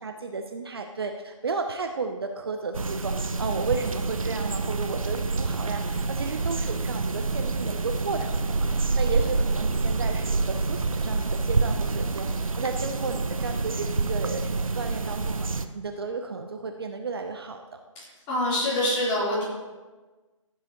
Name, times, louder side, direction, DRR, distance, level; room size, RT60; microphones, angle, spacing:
voice 1, 0.0-8.3 8.6-17.8, right 4 dB, 45° right, 6 dB, 0.7 m, -33 dB
sound 1, 2.7-15.7, right 3 dB, 85° right, 0.7 m, -27 dB
voice 2, 18.3-19.4, left 1 dB, 15° left, -8 dB, 3.6 m, -25 dB
14.5 x 8.0 x 3.0 m, 1.3 s
figure-of-eight pair, 155°, 17 cm